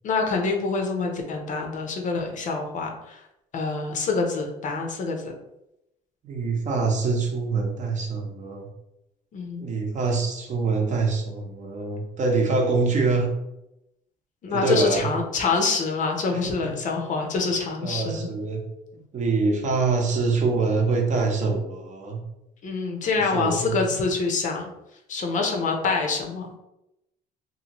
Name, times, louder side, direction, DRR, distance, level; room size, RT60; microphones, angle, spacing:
voice 1, 0.0-3.2 3.5-5.2 9.3-9.7 14.4-18.3 22.6-24.6 25.1-26.5, left 4 dB, 50° left, 2 dB, 0.6 m, -26 dB
voice 2, 6.2-8.7 9.6-13.3 14.5-15.1 16.3-16.7 17.8-18.6 18.9-22.2 23.2-23.8, right 4 dB, 45° right, 1 dB, 0.7 m, -25 dB
2.7 x 2.7 x 2.9 m, 0.86 s
cardioid pair, 110°, 17 cm